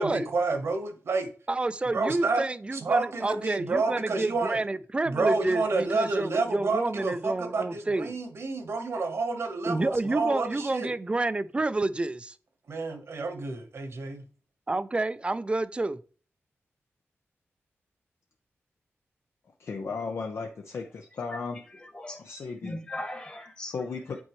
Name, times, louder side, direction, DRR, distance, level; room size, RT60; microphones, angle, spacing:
voice 1, 0.0-1.3 1.9-2.4 2.7-4.6 5.1-10.9 12.7-14.2, right 3 dB, 65° right, 1.2 m, -29 dB
voice 2, 1.5-8.2 9.6-12.4 14.7-16.0, right 2 dB, 25° right, 0.4 m, -29 dB
voice 3, 19.6-21.6 22.2-22.8 23.7-24.2, left 4 dB, 70° left, 0.6 m, -35 dB
voice 4, 21.3-22.3 22.6-23.8, left 1 dB, 25° left, 1.4 m, -39 dB
8.4 x 4.4 x 3.0 m
wide cardioid pair, 110°, 5 cm